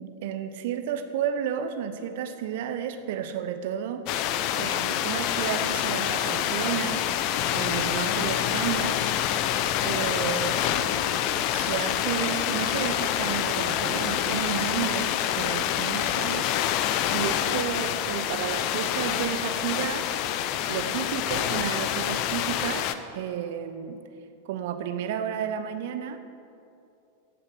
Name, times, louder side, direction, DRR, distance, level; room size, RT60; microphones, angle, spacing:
voice 1, 0.0-4.0 4.5-7.0 7.5-9.0 9.8-11.1 11.5-16.5 17.1-20.1 20.4-24.0 24.5-26.2, right 9 dB, 50° right, 9 dB, 0.9 m, -32 dB
sound 1, 4.1-22.9, left 11 dB, 40° left, 0.6 m, -27 dB
15.0 x 7.7 x 6.2 m, 2.6 s
figure-of-eight pair, 90°, 0 cm